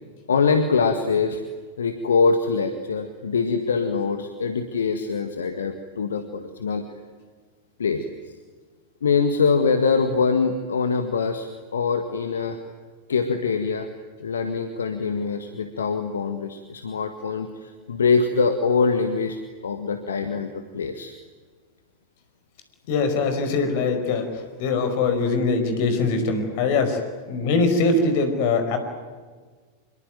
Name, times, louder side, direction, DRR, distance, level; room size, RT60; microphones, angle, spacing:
voice 1, 0.3-1.4 1.8-6.8 7.8-8.1 9.0-12.6 13.1-13.9 14.2-19.4 19.6-21.1, left 5 dB, 70° left, 8 dB, 1.8 m, -23 dB
voice 2, 22.9-27.0 27.3-28.8, left 3 dB, 50° left, 8 dB, 5.2 m, -22 dB
26.5 x 22.5 x 9.2 m, 1.5 s
figure-of-eight pair, 90°, 0 cm